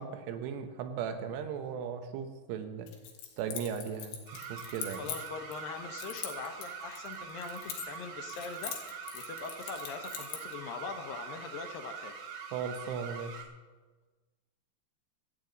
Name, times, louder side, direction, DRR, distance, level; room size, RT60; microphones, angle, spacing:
voice 1, 0.0-2.9 3.4-5.1 12.5-13.4, right 7 dB, 85° right, 7 dB, 3.2 m, -37 dB
Keys jangling, 2.9-5.6 6.0-8.0 8.3-10.5, left 8 dB, 85° left, 3.7 m, -42 dB
sound 1, 4.3-13.4, right 6 dB, 60° right, 2.1 m, -44 dB
voice 2, 5.0-12.2, left 5 dB, 70° left, 6 dB, 2.3 m, -42 dB
25.0 x 8.8 x 4.0 m, 1.3 s
omnidirectional pair, 4.8 m